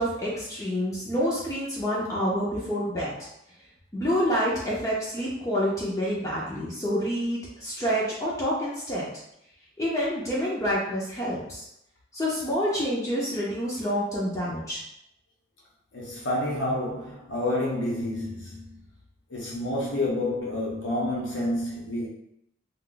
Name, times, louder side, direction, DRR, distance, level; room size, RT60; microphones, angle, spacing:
voice 1, 0.0-3.3 3.9-9.1 9.8-11.6 12.1-14.8, equal, 15° left, -7 dB, 0.5 m, -28 dB
voice 2, 15.9-18.8 19.3-22.1, left 1 dB, 85° left, -5 dB, 0.9 m, -29 dB
2.5 x 2.3 x 3.8 m, 0.77 s
head